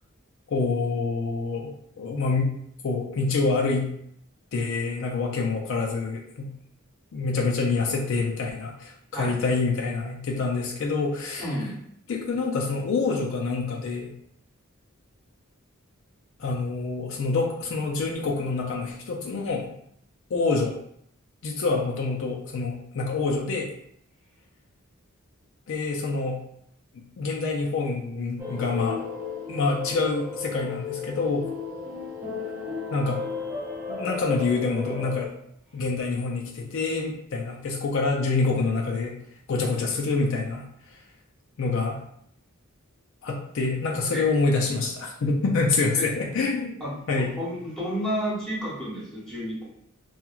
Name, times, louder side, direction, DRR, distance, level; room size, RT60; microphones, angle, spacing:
voice 1, 0.5-1.7 2.0-2.5 2.8-3.9 4.5-6.5 7.1-11.5 12.1-14.1 16.4-19.7 20.3-20.8 21.4-23.7 25.7-26.4 27.2-29.0 29.5-31.5 32.9-33.2 33.9-35.3 35.7-39.2 39.5-40.6 41.6-42.0 43.2-46.7 47.1-47.3, left 3 dB, 65° left, 0 dB, 0.4 m, -26 dB
voice 2, 11.4-11.8 44.1-44.2 46.0-46.1 46.8-46.9 47.4-49.7, equal, 5° left, -7 dB, 0.9 m, -31 dB
sound 1, 28.4-35.3, left 4 dB, 15° right, 0.6 m, -34 dB
2.9 x 2.3 x 2.3 m, 0.69 s
head